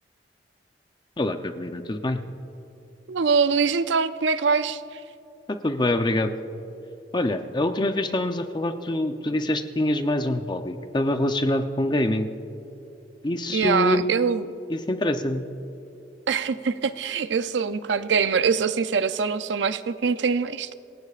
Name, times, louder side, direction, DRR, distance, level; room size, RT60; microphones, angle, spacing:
voice 1, 1.2-2.2 5.5-6.3 7.1-12.3 13.2-14.0 14.7-15.5, left 1 dB, 25° left, 7 dB, 0.6 m, -25 dB
voice 2, 3.1-4.8 13.5-14.4 16.3-20.7, right 5 dB, 85° right, 13 dB, 0.5 m, -23 dB
27.0 x 16.5 x 2.5 m, 2.9 s
head